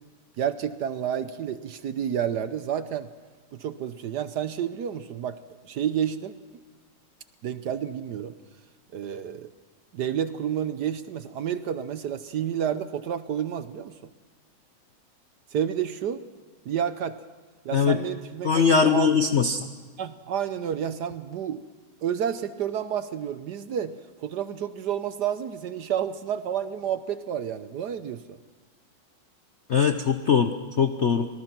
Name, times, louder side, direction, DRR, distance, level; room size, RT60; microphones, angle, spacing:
voice 1, 0.4-3.1 3.6-5.4 5.6-6.3 7.4-8.3 8.9-9.5 9.9-13.9 15.5-16.2 16.6-17.2 17.6-19.1 20.0-21.6 22.0-28.4, right 9 dB, 65° right, 12 dB, 1.2 m, -30 dB
voice 2, 18.4-19.6 29.7-31.3, left 6 dB, 60° left, 7 dB, 0.7 m, -21 dB
25.0 x 19.0 x 6.0 m, 1.4 s
omnidirectional pair, 2.2 m